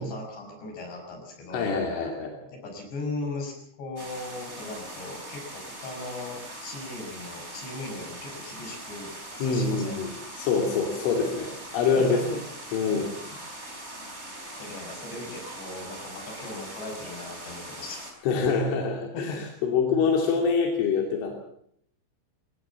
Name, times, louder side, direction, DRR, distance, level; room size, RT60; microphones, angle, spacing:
voice 1, 0.0-1.7 2.5-9.1 9.4-10.1 12.0-12.2 12.9-13.4 14.6-18.0 19.1-19.4, left 2 dB, 65° left, 2 dB, 8.0 m, -38 dB
voice 2, 1.5-2.4 9.4-10.1 10.4-12.4 12.7-13.1 18.2-21.3, left 5 dB, 90° left, 1 dB, 5.3 m, -25 dB
sound 1, 4.0-18.1, right 1 dB, 15° right, 4.2 m, -41 dB
21.0 x 19.0 x 7.3 m, 0.69 s
omnidirectional pair, 5.4 m